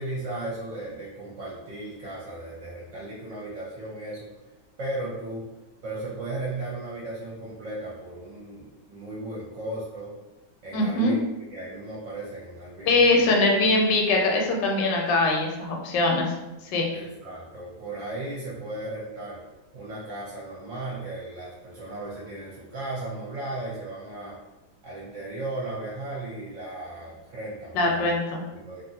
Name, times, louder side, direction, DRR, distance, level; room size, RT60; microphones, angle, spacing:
voice 1, 0.0-4.3 4.8-5.5 5.8-10.2 10.6-13.3 16.9-19.4 19.7-24.4 24.8-28.2 28.5-28.8, right 2 dB, 60° right, -5 dB, 0.8 m, -36 dB
voice 2, 10.7-11.2 12.9-16.3 16.6-16.9 27.7-28.4, left 2 dB, 90° left, 0 dB, 1.2 m, -22 dB
2.8 x 2.5 x 2.7 m, 1.0 s
omnidirectional pair, 1.9 m